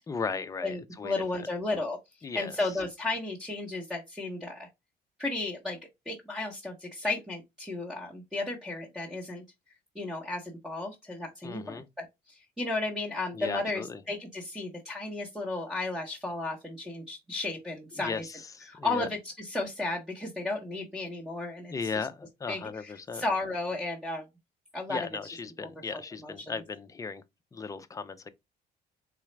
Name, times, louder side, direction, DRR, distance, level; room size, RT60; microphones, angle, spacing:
voice 1, 0.1-1.5 2.2-2.6 11.4-11.9 13.3-14.0 18.0-19.1 21.7-23.2 24.9-27.2 27.5-28.3, left 5 dB, 20° left, 0.5 m, -36 dB
voice 2, 0.6-4.7 5.2-5.8 6.1-9.4 9.9-18.2 18.7-21.7 22.5-24.2 24.7-25.0 25.9-26.3, left 2 dB, 5° right, 0.9 m, -34 dB
4.0 x 2.3 x 3.2 m
cardioid pair, 110°, 17 cm